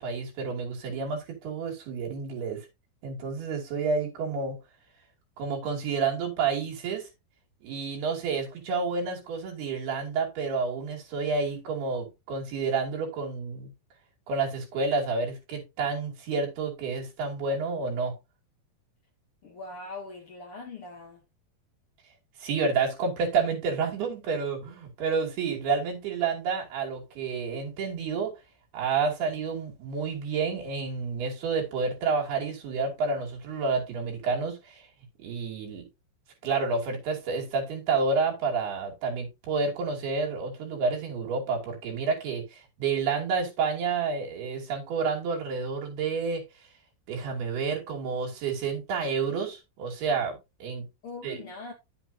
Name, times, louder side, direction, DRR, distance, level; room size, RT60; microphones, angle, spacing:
voice 1, 0.0-2.7 3.0-4.6 5.4-7.1 7.6-13.7 14.3-18.1 22.4-28.3 28.7-34.8 35.2-35.9 36.4-46.4 47.1-50.9 51.2-51.4, right 4 dB, 85° right, 4.6 m, -29 dB
voice 2, 19.4-21.2 51.0-51.7, left 3 dB, 50° left, 1.9 m, -41 dB
10.0 x 7.7 x 2.8 m
omnidirectional pair, 4.4 m